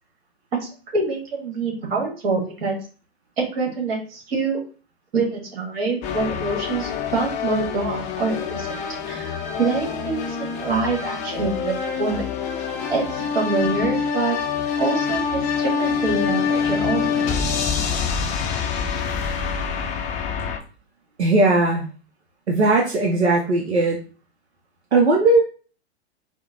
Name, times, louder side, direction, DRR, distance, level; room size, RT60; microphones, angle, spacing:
voice 1, 0.6-2.8 3.4-4.6 5.1-8.7 9.1-12.3 12.6-14.4 14.8-17.3, right 3 dB, 65° right, 0 dB, 1.5 m, -26 dB
sound 1, 6.0-20.6, left 6 dB, 20° left, 0.4 m, -26 dB
voice 2, 21.2-21.9 22.5-24.0 24.9-25.4, right 2 dB, 90° right, 0 dB, 0.6 m, -18 dB
4.3 x 2.1 x 2.5 m, 0.38 s
hypercardioid pair, 105°, 32 cm